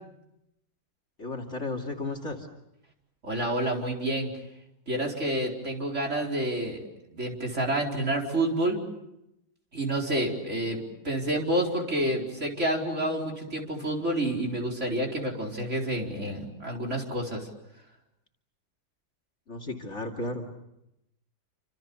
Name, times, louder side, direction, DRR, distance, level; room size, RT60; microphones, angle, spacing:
voice 1, 1.2-2.5 19.5-20.5, left 2 dB, 40° left, 6 dB, 2.9 m, -34 dB
voice 2, 3.2-4.3 4.9-6.8 7.1-8.8 9.7-17.5, right 1 dB, 40° right, 0 dB, 4.8 m, -29 dB
29.5 x 26.5 x 7.1 m, 0.86 s
omnidirectional pair, 2.0 m